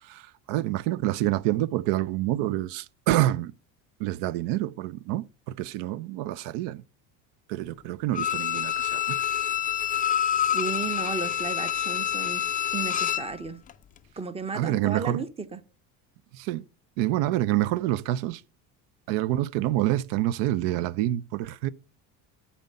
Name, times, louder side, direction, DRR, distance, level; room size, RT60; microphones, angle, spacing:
voice 1, 0.0-3.5 4.0-6.8 7.5-9.2 14.5-15.2 16.3-16.6 17.0-18.4 19.1-21.7, right 14 dB, 70° right, 0.5 m, -27 dB
Bowed string instrument, 8.1-13.3 13.7-13.8, left 10 dB, 20° left, 0.3 m, -27 dB
voice 2, 10.4-12.4 12.7-13.6 14.2-15.6, right 5 dB, 15° right, 0.6 m, -34 dB
9.3 x 4.2 x 5.4 m
supercardioid pair, 115°, 43 cm